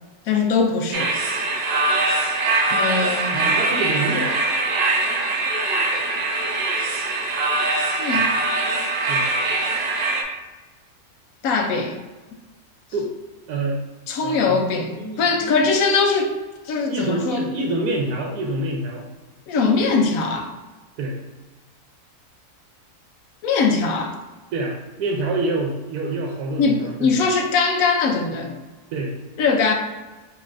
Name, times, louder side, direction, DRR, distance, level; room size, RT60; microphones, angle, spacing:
voice 1, 0.3-1.1 2.7-3.4 8.0-8.3 11.4-12.0 14.1-14.9 15.2-16.3 16.7-17.5 19.5-20.5 23.4-24.2 26.6-28.6 29.4-29.7, left 4 dB, 70° left, 4 dB, 1.0 m, -21 dB
sound 1, 0.9-10.2, right 3 dB, 60° right, 0.7 m, -22 dB
voice 2, 3.3-4.3 9.1-9.2 12.9-13.1 13.5-13.8 14.2-14.6 14.9-15.5 16.8-19.1 21.0-21.2 24.5-27.2 28.9-29.1, right 2 dB, 85° right, -1 dB, 1.2 m, -26 dB
5.3 x 3.1 x 2.5 m, 1.2 s
omnidirectional pair, 1.6 m